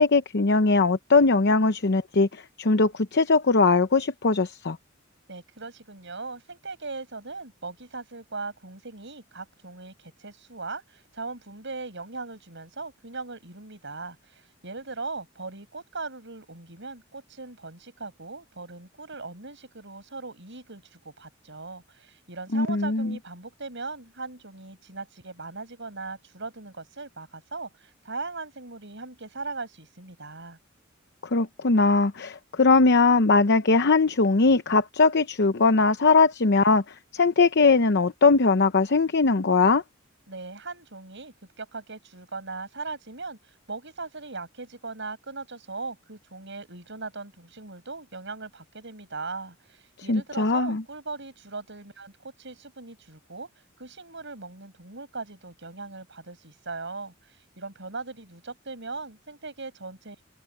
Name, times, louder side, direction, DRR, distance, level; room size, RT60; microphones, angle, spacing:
voice 1, 0.0-4.8 22.5-23.1 31.3-36.8 37.1-39.8 50.1-50.8, left 3 dB, 55° left, 0.8 m, -20 dB
voice 2, 5.3-30.6 40.3-53.5 53.8-60.3, right 3 dB, 65° right, 7.4 m, -39 dB
head